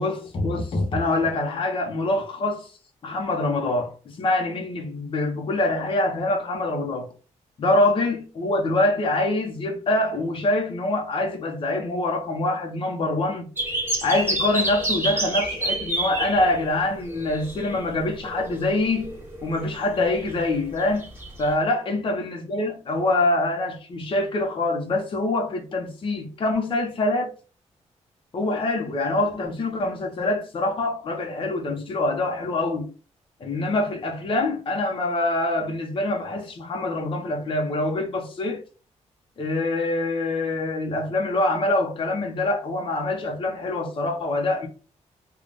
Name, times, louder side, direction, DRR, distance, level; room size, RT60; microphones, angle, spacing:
voice 1, 0.0-2.7 3.0-7.1 7.6-13.5 14.0-19.1 19.4-21.1 21.4-27.3 28.3-32.9 33.4-38.6 39.4-44.7, left 2 dB, 45° left, 0.8 m, -25 dB
sound 1, 13.6-21.5, right 1 dB, 15° right, 1.2 m, -29 dB
3.9 x 2.3 x 3.3 m
wide cardioid pair, 150°, 12 cm